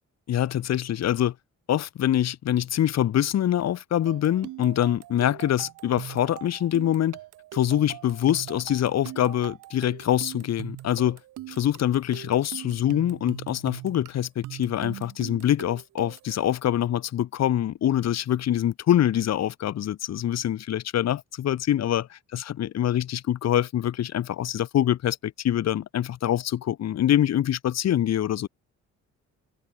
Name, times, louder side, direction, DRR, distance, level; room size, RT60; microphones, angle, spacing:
voice 1, 0.3-1.3 1.7-7.2 7.5-11.2 11.5-28.5, left 11 dB, 60° left, 1.2 m, -25 dB
sound 1, 4.1-16.4, right 16 dB, 90° right, 4.7 m, -41 dB
cardioid pair, 90°, 30 cm